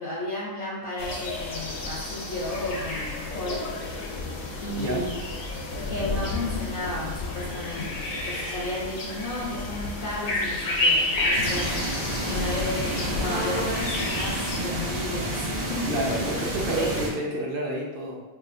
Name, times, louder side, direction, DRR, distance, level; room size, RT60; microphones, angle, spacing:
voice 1, 0.0-3.7 4.6-5.1 5.9-16.2 16.8-16.9, left 1 dB, 60° left, -5 dB, 0.6 m, -33 dB
sound 1, 1.0-14.6, left 2 dB, 80° left, 1.2 m, -30 dB
voice 2, 4.8-5.1 15.9-18.2, right 1 dB, 55° right, -1 dB, 0.6 m, -29 dB
sound 2, 11.3-17.1, right 1 dB, 80° right, 1.6 m, -30 dB
4.8 x 2.4 x 2.5 m, 1.1 s
omnidirectional pair, 1.4 m